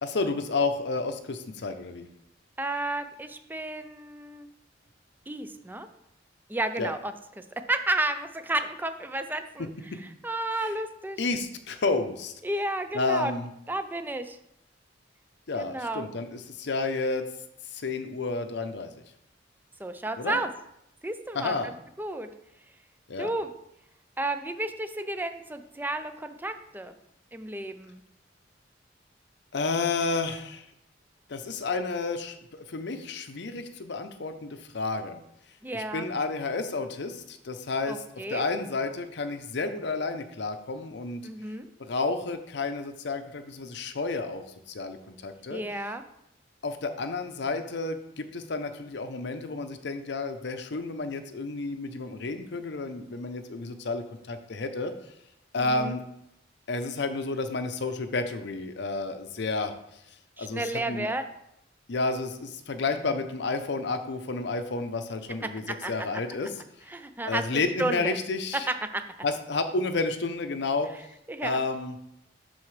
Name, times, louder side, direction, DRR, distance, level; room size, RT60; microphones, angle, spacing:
voice 1, 0.0-2.1 6.8-6.9 9.6-10.0 11.2-12.3 12.9-13.5 15.5-17.2 17.7-19.0 20.2-20.4 21.3-21.7 23.1-23.3 29.5-30.7 31.3-35.2 35.7-38.0 38.3-41.2 41.8-45.6 46.6-54.9 55.5-56.0 56.7-59.7 60.4-61.1 61.9-66.6 67.2-68.7 69.2-70.9 71.4-71.9, left 3 dB, 65° left, 8 dB, 0.7 m, -31 dB
voice 2, 2.6-4.5 5.3-5.9 6.5-9.7 10.2-11.2 12.4-13.3 13.7-14.4 15.6-16.1 19.8-20.5 21.0-22.3 23.2-23.5 24.2-26.9 27.3-28.0 35.6-36.1 37.9-38.4 41.2-41.7 45.5-46.0 55.6-56.0 60.4-61.2 65.4-65.9 66.9-68.1 68.7-69.1 71.3-71.6, right 2 dB, 10° right, 9 dB, 0.4 m, -32 dB
11.5 x 4.2 x 3.2 m, 0.80 s
head